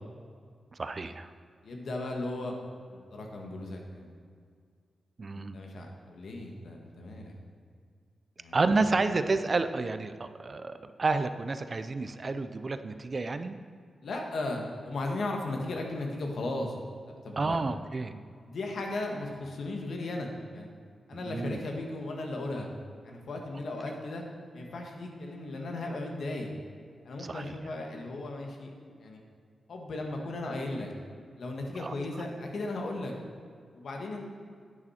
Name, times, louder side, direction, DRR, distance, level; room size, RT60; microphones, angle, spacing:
voice 1, 0.8-1.3 5.2-5.6 8.5-13.6 17.4-18.2 21.2-21.6 27.2-27.4 31.8-32.0, right 3 dB, 40° right, 10 dB, 0.5 m, -30 dB
voice 2, 1.6-2.6 2.9-4.1 5.3-7.3 8.4-9.0 14.0-16.7 17.1-17.6 18.4-20.7 21.1-22.7 23.0-24.2 24.5-26.5 27.0-29.2 29.7-30.9 31.4-33.1 33.7-34.2, left 2 dB, 75° left, 1 dB, 1.6 m, -36 dB
10.5 x 8.8 x 4.3 m, 2.1 s
wide cardioid pair, 100°, 0 cm